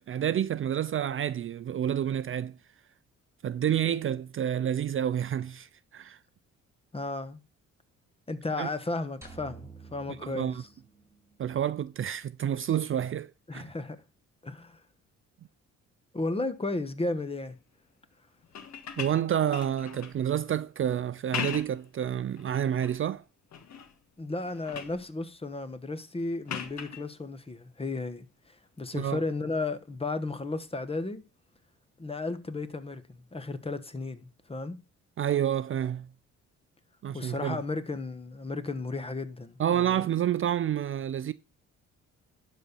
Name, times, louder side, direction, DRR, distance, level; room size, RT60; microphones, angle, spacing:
voice 1, 0.0-2.5 3.4-6.2 8.6-8.7 10.2-10.6 11.4-13.6 19.0-23.2 28.9-29.2 35.2-36.1 37.0-37.6 39.6-41.3, right 10 dB, 45° right, 0.5 m, -29 dB
voice 2, 6.9-7.4 8.3-10.7 13.5-14.0 14.4-14.8 16.1-17.6 24.2-28.2 28.8-31.2 32.0-34.8 37.1-40.0, left 3 dB, 20° left, 1.3 m, -34 dB
sound 1, 9.2-11.5, right 4 dB, 10° right, 4.4 m, -50 dB
sound 2, 18.4-20.2 21.1-21.9 22.4-23.0 23.5-24.0 24.3-25.0 26.5-27.0 28.8-28.9, left 8 dB, 60° left, 1.7 m, -39 dB
11.5 x 4.2 x 6.9 m
cardioid pair, 90°, 30 cm